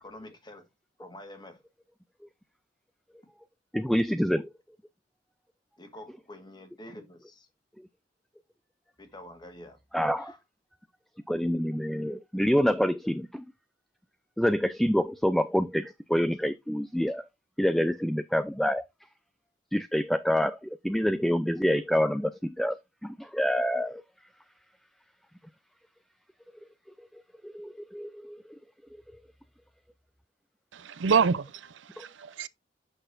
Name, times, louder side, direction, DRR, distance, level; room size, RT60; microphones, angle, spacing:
voice 1, 0.0-0.7 1.0-1.6 5.8-7.5 9.0-9.8 10.2-10.4, left 1 dB, 25° left, 1.4 m, -47 dB
voice 2, 3.7-4.5 9.9-10.3 11.3-13.5 14.4-17.2 17.6-18.8 19.7-24.0 27.0-28.6 32.0-32.1, equal, ahead, 0.3 m, -27 dB
voice 3, 30.7-32.5, right 5 dB, 80° right, 0.5 m, -27 dB
7.7 x 6.3 x 2.5 m
head